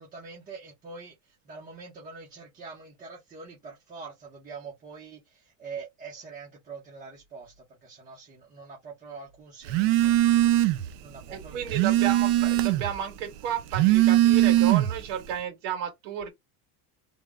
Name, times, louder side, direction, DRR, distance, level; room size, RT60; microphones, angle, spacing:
voice 1, 0.0-10.2 11.0-12.1, right 4 dB, 20° right, 0.8 m, -44 dB
Telephone, 9.7-10.9 11.3-13.0 13.6-15.1, right 14 dB, 55° right, 0.6 m, -21 dB
voice 2, 11.3-16.3, right 9 dB, 75° right, 2.0 m, -32 dB
3.4 x 2.2 x 3.6 m
cardioid pair, 180°, 43 cm